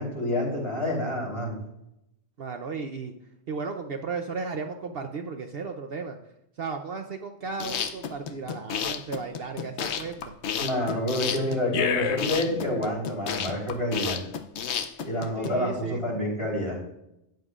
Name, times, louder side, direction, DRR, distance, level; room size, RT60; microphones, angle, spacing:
voice 1, 0.0-1.6 10.5-14.2 15.0-16.8, left 1 dB, 25° left, -4 dB, 3.8 m, -28 dB
voice 2, 2.4-3.1 3.5-6.2 6.6-10.3 15.4-16.1, right 4 dB, 60° right, 5 dB, 0.9 m, -35 dB
sound 1, 7.5-15.5, left 7 dB, 70° left, 1.0 m, -30 dB
13.0 x 9.3 x 2.5 m, 0.83 s
omnidirectional pair, 1.2 m